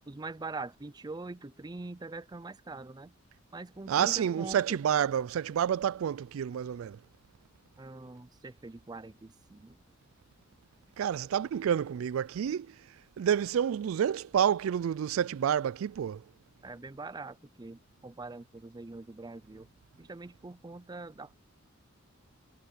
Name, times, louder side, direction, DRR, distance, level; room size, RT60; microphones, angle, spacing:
voice 1, 0.1-3.1 3.5-4.8 7.8-9.7 16.6-19.7 20.0-21.4, right 3 dB, 20° right, 0.5 m, -43 dB
voice 2, 3.9-7.0 11.0-12.8 13.2-16.2, right 9 dB, 85° right, 0.3 m, -29 dB
head